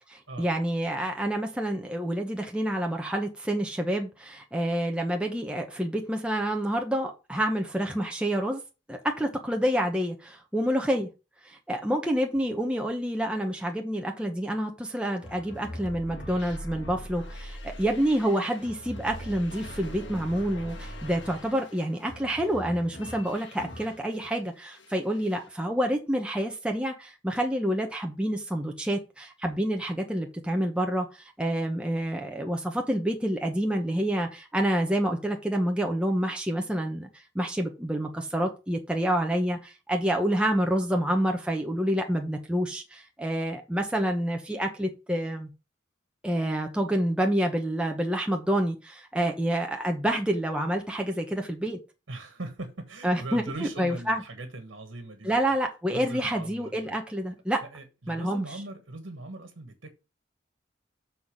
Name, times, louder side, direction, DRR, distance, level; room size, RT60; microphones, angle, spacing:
voice 1, 0.1-8.6 8.9-11.1 11.4-45.5 46.2-51.8 53.0-53.4 53.8-54.2 55.2-57.6 58.1-58.4, right 1 dB, 5° right, 0.8 m, -28 dB
sound 1, 15.2-24.4 24.7-25.5, equal, 70° left, 1.7 m, -42 dB
voice 2, 52.1-55.5 55.9-56.9 57.7-59.9, right 2 dB, 85° right, 1.4 m, -40 dB
7.0 x 4.0 x 6.0 m
head